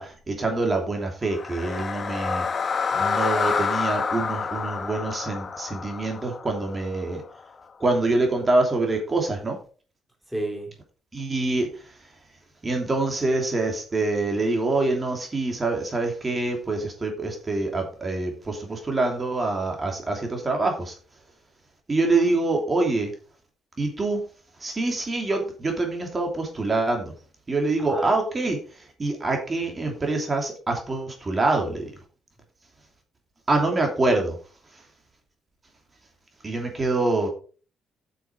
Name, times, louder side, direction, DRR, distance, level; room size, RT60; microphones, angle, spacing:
voice 1, 0.0-2.4 3.0-7.2 7.8-9.6 11.1-11.7 12.6-20.9 21.9-23.1 23.8-24.2 24.6-27.1 27.5-28.6 29.0-31.9 33.5-34.3 36.4-37.3, right 2 dB, 30° right, 2 dB, 3.0 m, -25 dB
sound 1, 1.3-7.4, left 5 dB, 40° left, 1.0 m, -28 dB
voice 2, 2.9-3.5 10.3-10.7 27.8-28.1, right 1 dB, ahead, 1 dB, 3.0 m, -34 dB
8.4 x 7.0 x 5.1 m, 0.39 s
cardioid pair, 90°, 0 cm